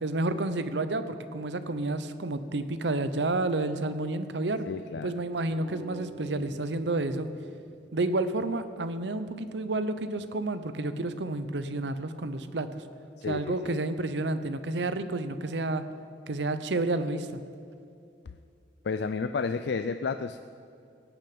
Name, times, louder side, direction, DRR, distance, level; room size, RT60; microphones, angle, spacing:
voice 1, 0.0-4.7 5.0-7.3 7.9-12.7 13.3-15.8 16.3-17.4, right 2 dB, 75° right, 11 dB, 0.8 m, -30 dB
voice 2, 4.7-5.1 13.2-13.8 18.3-18.4 18.8-20.4, left 4 dB, 70° left, 10 dB, 0.4 m, -32 dB
sound 1, 5.5-8.7, right 1 dB, 35° left, 3.5 m, -47 dB
17.0 x 6.7 x 8.6 m, 2.4 s
head